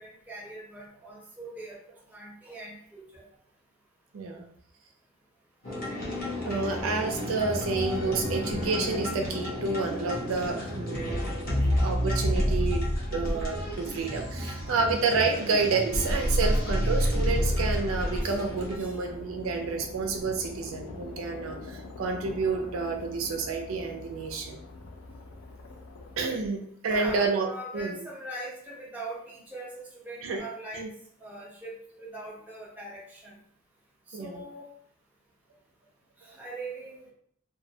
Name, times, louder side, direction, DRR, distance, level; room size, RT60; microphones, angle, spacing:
voice 1, 0.0-1.8 2.1-3.3 11.5-11.6 18.2-18.4 18.8-19.0 26.8-30.8 31.2-33.3 34.1-34.7 36.2-37.1, right 1 dB, 10° right, -5 dB, 0.6 m, -41 dB
voice 2, 4.1-4.5 6.5-11.2 11.8-12.8 13.1-24.6 26.2-27.5 27.7-28.0 30.2-30.4 30.7-30.9 34.1-34.4, right 4 dB, 85° right, 3 dB, 0.4 m, -29 dB
sound 1, 5.6-18.8, equal, 45° left, 0.7 m, -29 dB
sound 2, 18.3-26.2, left 3 dB, 75° left, 0.4 m, -43 dB
2.3 x 2.0 x 2.7 m, 0.64 s
head